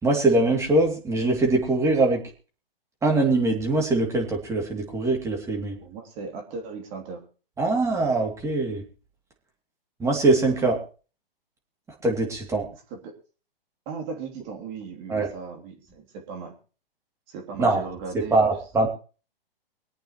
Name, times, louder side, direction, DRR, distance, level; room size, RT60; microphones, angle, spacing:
voice 1, 0.0-2.2 3.0-5.8 7.6-8.8 10.0-10.8 12.0-12.7 15.1-15.3 17.6-17.8 18.3-18.9, right 2 dB, 10° right, 1 dB, 2.7 m, -22 dB
voice 2, 5.8-7.2 12.9-13.2 13.8-16.5 17.3-18.5, right 4 dB, 35° right, 2 dB, 3.1 m, -37 dB
24.5 x 8.8 x 3.1 m, 0.37 s
hypercardioid pair, 130°, 30 cm